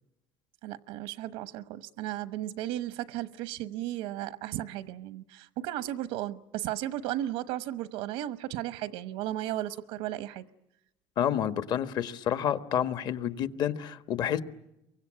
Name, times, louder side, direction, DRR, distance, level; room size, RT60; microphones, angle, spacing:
voice 1, 0.6-10.4, right 13 dB, 90° right, 1.0 m, -35 dB
voice 2, 11.2-14.4, left 9 dB, 50° left, 1.4 m, -29 dB
28.5 x 24.0 x 8.7 m
cardioid pair, 140°, 9 cm